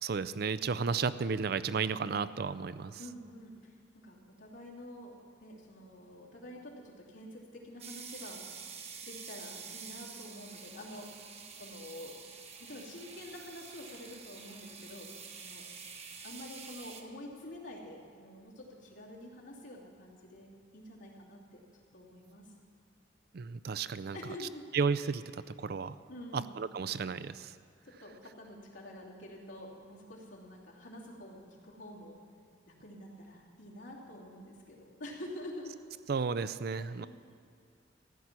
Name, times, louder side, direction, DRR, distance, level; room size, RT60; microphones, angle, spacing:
voice 1, 0.0-3.0 23.3-24.2 24.7-26.0 26.3-27.6 36.1-37.1, right 5 dB, 55° right, 15 dB, 0.4 m, -33 dB
voice 2, 3.0-8.4 9.0-11.1 11.6-12.1 12.6-15.1 15.4-15.6 16.2-21.6 21.9-22.5 24.1-24.7 26.1-26.5 27.8-32.2 32.7-35.8 36.7-37.1, left 1 dB, 90° left, -5 dB, 2.8 m, -48 dB
sound 1, 7.8-17.0, right 6 dB, 35° right, 1.0 m, -48 dB
14.5 x 6.1 x 9.6 m, 2.2 s
head